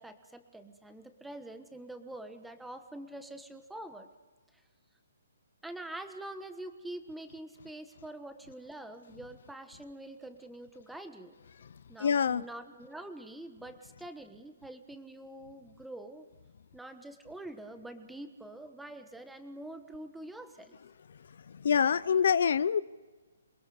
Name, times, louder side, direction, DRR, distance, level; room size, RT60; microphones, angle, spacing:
voice 1, 0.0-4.1 4.5-4.6 5.6-11.4 11.9-16.3 16.7-20.8, right 1 dB, 5° right, 7 dB, 1.3 m, -45 dB
voice 2, 12.0-12.4 21.5-22.8, left 7 dB, 60° left, 18 dB, 0.6 m, -26 dB
28.0 x 22.0 x 5.1 m, 1.3 s
hypercardioid pair, 165°, 0 cm